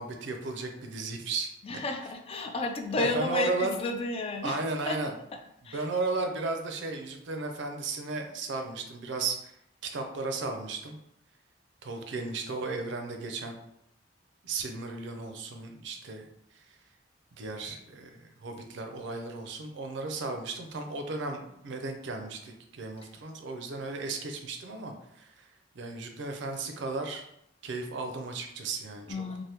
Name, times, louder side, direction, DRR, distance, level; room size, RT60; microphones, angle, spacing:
voice 1, 0.0-1.8 3.0-3.7 4.4-5.1 5.7-9.5 9.8-11.0 11.8-13.6 14.4-16.3 16.5-16.6 17.4-25.4 25.7-27.3 27.6-29.1, right 3 dB, 65° right, 5 dB, 0.4 m, -35 dB
voice 2, 1.6-4.6 4.9-5.0 5.6-5.8 29.1-29.4, left 3 dB, 30° left, 5 dB, 0.3 m, -32 dB
3.3 x 2.1 x 2.8 m, 0.76 s
head